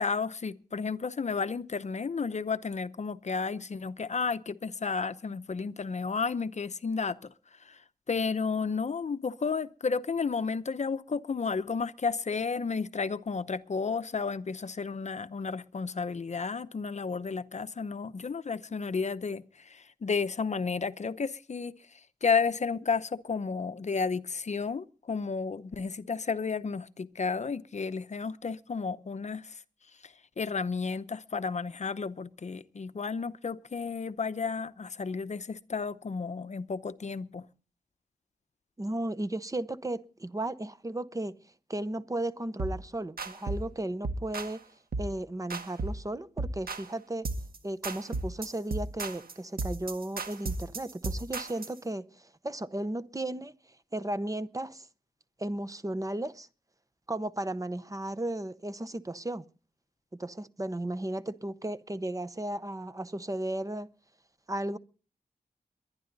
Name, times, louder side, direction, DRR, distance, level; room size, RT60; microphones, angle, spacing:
voice 1, 0.0-29.6 30.0-37.5, left 5 dB, 50° left, 0.7 m, -32 dB
voice 2, 38.8-41.3 41.7-44.6 45.0-47.2 47.6-53.5 53.9-54.9 55.4-56.5 57.1-59.4 60.2-63.9 64.5-64.8, right 1 dB, 20° right, 0.7 m, -35 dB
sound 1, 42.6-42.8 43.2-43.7 44.0-44.6 44.9-45.2 45.5-46.0 46.4-46.9 47.2-47.6 47.8-51.8, right 3 dB, 75° right, 1.6 m, -35 dB
22.5 x 10.5 x 4.0 m
wide cardioid pair, 130°, 15 cm